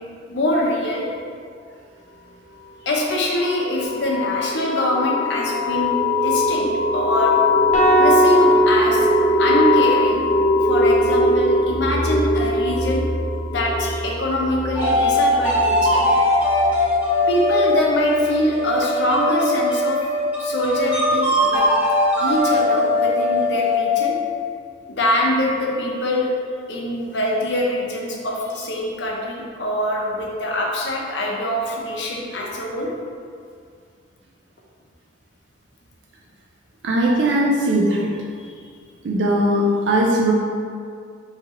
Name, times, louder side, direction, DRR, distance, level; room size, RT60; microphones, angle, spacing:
voice 1, 0.3-1.1 2.8-7.4 8.0-9.1 9.4-10.2 10.6-13.1 13.5-16.1 17.3-20.0 20.4-21.7 22.2-24.2 24.9-26.3 26.7-32.9 38.4-38.6, left 1 dB, 70° left, -2 dB, 0.7 m, -24 dB
sound 1, 2.9-17.3, left 2 dB, 25° right, 1.2 m, -21 dB
sound 2, 7.7-10.1, right 2 dB, 40° left, 0.8 m, -19 dB
sound 3, 14.8-24.2, left 1 dB, 10° right, 0.7 m, -20 dB
voice 2, 36.8-38.2 39.0-40.3, right 1 dB, 75° right, -2 dB, 0.5 m, -19 dB
4.7 x 3.0 x 3.0 m, 2.2 s
head